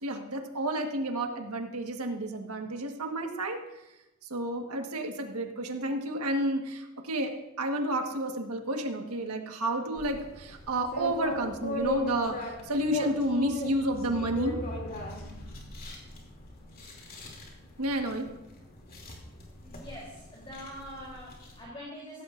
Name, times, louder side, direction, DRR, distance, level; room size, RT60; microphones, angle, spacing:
voice 1, 0.0-3.6 4.3-7.3 7.6-12.3 12.7-14.6 17.8-18.3, right 1 dB, 85° right, 3 dB, 1.5 m, -30 dB
sound 1, 10.0-21.6, left 1 dB, 40° left, 2.7 m, -38 dB
voice 2, 19.6-22.2, equal, 25° left, -5 dB, 3.3 m, -44 dB
16.0 x 15.0 x 2.6 m, 0.95 s
head